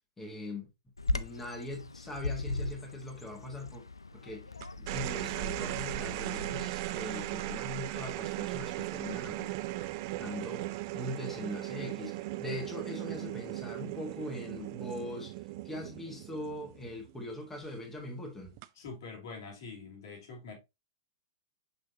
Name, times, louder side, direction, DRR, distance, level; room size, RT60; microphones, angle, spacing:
voice 1, 0.2-0.7 1.1-3.8 4.1-9.5 10.1-18.6, left 1 dB, 10° left, 1.6 m, -41 dB
Bird vocalization bird call bird song, 1.0-6.7, left 2 dB, 85° left, 0.4 m, -38 dB
sound 1, 4.6-17.2 18.4-18.9, right 16 dB, 45° right, 0.4 m, -38 dB
voice 2, 18.8-20.5, left 4 dB, 60° left, 2.8 m, -45 dB
6.2 x 5.6 x 2.8 m
figure-of-eight pair, 100°, 2 cm